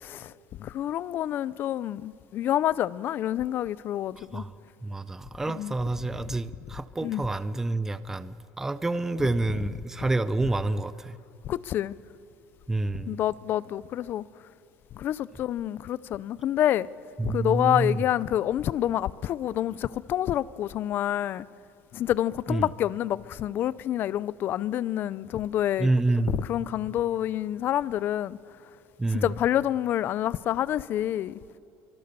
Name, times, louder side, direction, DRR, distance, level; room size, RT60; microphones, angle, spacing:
voice 1, 0.0-0.3 0.6-4.4 5.5-5.7 7.0-7.2 11.4-11.9 13.1-14.3 14.9-16.9 17.2-21.5 21.9-25.9 26.3-28.4 29.1-31.3, left 12 dB, 40° left, 0.5 m, -28 dB
voice 2, 4.2-4.5 4.8-11.2 12.7-13.2 17.2-18.0 22.5-22.7 25.8-26.4 29.0-29.3, right 2 dB, 10° right, 0.5 m, -28 dB
26.5 x 24.0 x 6.7 m
cardioid pair, 150°, 5 cm